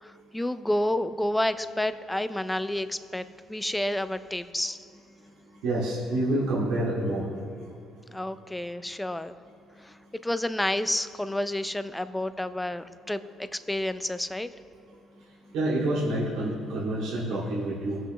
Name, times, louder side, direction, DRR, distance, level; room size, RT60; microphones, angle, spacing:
voice 1, 0.0-4.8 8.1-9.3 9.8-9.9 10.2-14.5, left 1 dB, 10° left, 12 dB, 0.5 m, -30 dB
voice 2, 5.6-7.3 15.5-18.0, right 1 dB, 85° right, -7 dB, 2.4 m, -27 dB
20.0 x 7.8 x 3.1 m, 2.5 s
cardioid pair, 100°, 0 cm